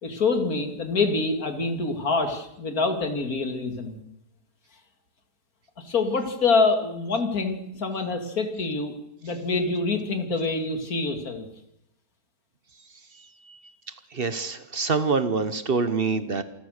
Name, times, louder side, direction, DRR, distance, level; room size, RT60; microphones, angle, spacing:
voice 1, 0.0-4.0 5.8-8.9 9.2-11.5, left 3 dB, 60° left, 6 dB, 2.8 m, -26 dB
voice 2, 14.1-16.4, right 4 dB, 40° right, 12 dB, 1.1 m, -25 dB
27.5 x 14.5 x 6.6 m, 0.82 s
omnidirectional pair, 1.7 m